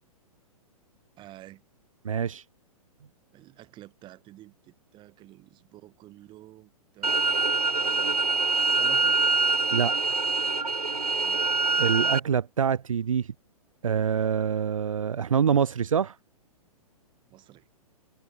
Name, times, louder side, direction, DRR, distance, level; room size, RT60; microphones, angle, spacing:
voice 1, 1.2-1.6 3.3-8.2 8.7-9.1 11.1-11.4 17.3-17.7, right 15 dB, 25° right, 7.0 m, -49 dB
voice 2, 2.0-2.4 9.7-9.9 11.8-13.3 13.8-16.2, right 7 dB, 60° right, 2.9 m, -25 dB
sound 1, 7.0-12.2, right 4 dB, 85° right, 0.7 m, -25 dB
figure-of-eight pair, 115°, 19 cm